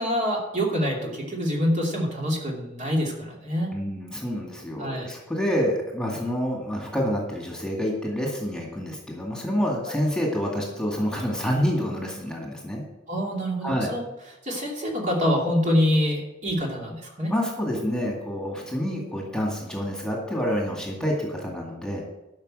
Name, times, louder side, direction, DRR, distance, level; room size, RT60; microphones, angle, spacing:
voice 1, 0.0-3.7 4.8-5.1 9.9-10.0 13.1-14.0 14.4-17.3, equal, 40° right, -1 dB, 2.8 m, -26 dB
voice 2, 3.7-12.8 13.6-13.9 17.3-22.0, equal, 5° left, -1 dB, 2.1 m, -28 dB
12.5 x 5.9 x 7.6 m, 1.0 s
head